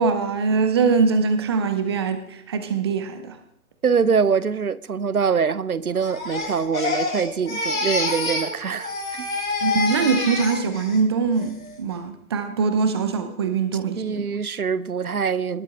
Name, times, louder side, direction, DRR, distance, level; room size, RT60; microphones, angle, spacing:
voice 1, 0.0-3.4 9.6-14.2, right 5 dB, 20° right, 0.7 m, -22 dB
voice 2, 3.8-9.3 14.0-15.6, right 6 dB, 75° right, 0.8 m, -24 dB
Crying sobbing, 6.0-8.5 8.8-11.0 11.4-11.8, left 2 dB, 70° left, 5.1 m, -27 dB
19.5 x 7.4 x 3.7 m
figure-of-eight pair, 135°, 44 cm